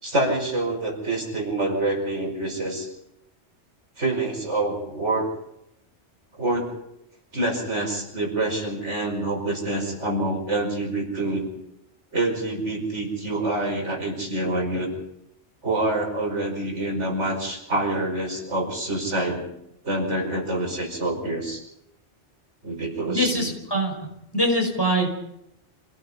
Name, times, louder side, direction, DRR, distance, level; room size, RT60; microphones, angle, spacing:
voice 1, 0.0-2.9 4.0-5.3 6.4-6.7 7.3-11.4 12.1-14.9 15.6-19.4 19.8-21.6 22.6-23.5, right 2 dB, 80° right, 1 dB, 5.8 m, -26 dB
voice 2, 23.1-23.9 24.3-25.1, equal, 20° left, 1 dB, 5.3 m, -23 dB
27.5 x 17.5 x 5.6 m, 0.80 s
omnidirectional pair, 1.2 m